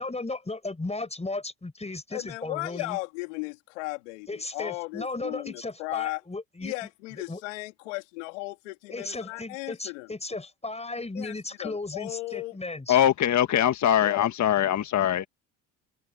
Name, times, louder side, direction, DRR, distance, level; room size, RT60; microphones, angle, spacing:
voice 1, 0.0-3.0 4.3-6.7 7.3-7.4 8.9-13.0, left 2 dB, 15° left, 5.5 m, -35 dB
voice 2, 2.1-6.2 6.6-10.1 11.1-12.6 14.0-14.3, left 23 dB, 90° left, 2.9 m, -36 dB
voice 3, 12.9-15.3, left 10 dB, 50° left, 1.5 m, -22 dB
hypercardioid pair, 65°, 36 cm